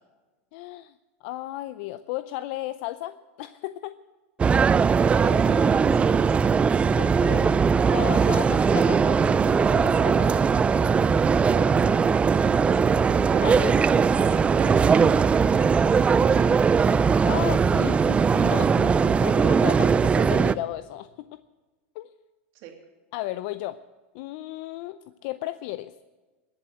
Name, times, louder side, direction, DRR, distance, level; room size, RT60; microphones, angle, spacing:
voice 1, 0.5-0.9 1.2-4.0 7.0-10.5 13.4-13.8 17.2-21.4 22.0-22.1 23.1-23.8 24.1-25.9, left 15 dB, 60° left, 13 dB, 0.5 m, -34 dB
sound 1, 4.4-20.5, right 5 dB, 20° right, 0.4 m, -20 dB
voice 2, 5.0-6.4 11.1-11.8 12.1-13.5 14.2-16.5 22.5-22.8, right 6 dB, 55° right, 3 dB, 2.9 m, -39 dB
21.0 x 7.9 x 7.9 m, 1.3 s
hypercardioid pair, 115°, 7 cm